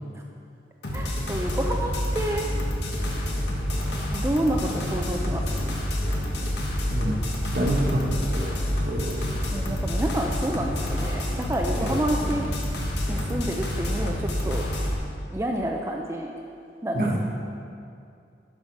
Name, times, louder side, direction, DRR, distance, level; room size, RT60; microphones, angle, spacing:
sound 1, 0.8-15.0, equal, 70° left, 1.3 m, -28 dB
voice 1, 0.9-2.7 4.1-5.7 9.5-12.5 13.1-14.6 15.3-16.3 16.8-17.2, right 1 dB, 15° right, 1 dB, 0.4 m, -29 dB
voice 2, 7.5-8.5 8.8-9.5 11.7-11.9 16.9-17.2, right 1 dB, 50° right, -1 dB, 1.1 m, -27 dB
11.5 x 5.7 x 4.5 m, 2.5 s
head